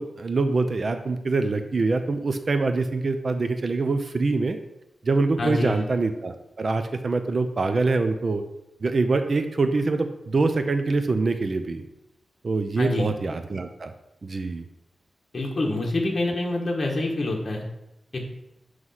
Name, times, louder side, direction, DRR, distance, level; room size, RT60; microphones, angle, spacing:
voice 1, 0.0-4.6 5.0-8.4 8.8-11.8 12.4-13.9 14.2-14.6, right 3 dB, 50° right, 8 dB, 0.5 m, -24 dB
voice 2, 5.4-5.8 12.8-13.1 15.3-17.6 18.1-18.3, left 2 dB, 40° left, -1 dB, 1.3 m, -26 dB
7.9 x 3.1 x 5.6 m, 0.88 s
wide cardioid pair, 90°, 0 cm